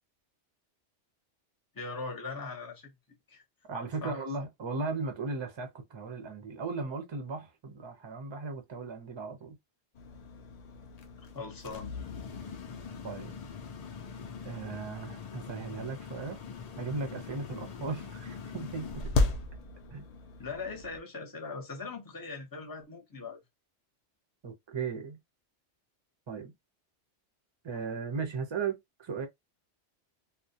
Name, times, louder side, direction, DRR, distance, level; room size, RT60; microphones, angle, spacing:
voice 1, 1.7-2.9 3.3-3.4 4.0-4.2 11.3-11.9 20.4-23.4, left 4 dB, 25° left, 0.6 m, -40 dB
voice 2, 3.6-9.6 13.0-13.4 14.4-16.4 16.8-19.1 19.9-20.1 24.4-25.2 26.3-26.5 27.6-29.3, right 4 dB, 35° right, 0.4 m, -37 dB
sound 1, 10.0-21.0, left 3 dB, 85° left, 0.3 m, -37 dB
2.3 x 2.1 x 2.6 m
omnidirectional pair, 1.2 m